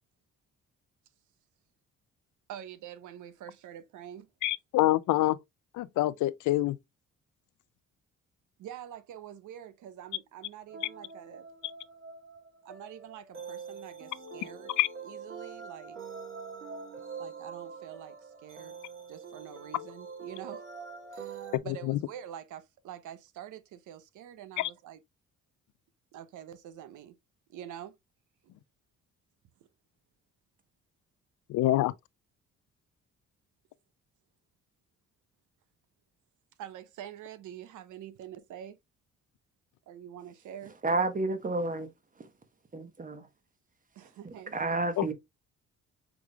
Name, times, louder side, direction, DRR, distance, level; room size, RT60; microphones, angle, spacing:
voice 1, 2.5-4.3 8.6-11.5 12.6-14.7 15.0-16.0 17.2-18.7 19.1-20.7 21.1-25.0 26.1-27.2 27.5-27.9 36.6-38.8 39.9-40.7 44.0-44.8, right 10 dB, 80° right, 0.7 m, -46 dB
voice 2, 4.4-5.4 5.7-6.8 14.8-14.9 21.9-22.0 24.6-24.7 31.5-31.9 45.0-45.1, left 16 dB, 75° left, 0.4 m, -26 dB
sound 1, 10.7-21.6, right 5 dB, 45° right, 1.7 m, -44 dB
voice 3, 40.8-41.9 42.1-42.3 42.7-43.3 44.0-45.1, right 2 dB, 25° right, 1.1 m, -31 dB
6.1 x 3.4 x 2.3 m
cardioid pair, 90°, 30 cm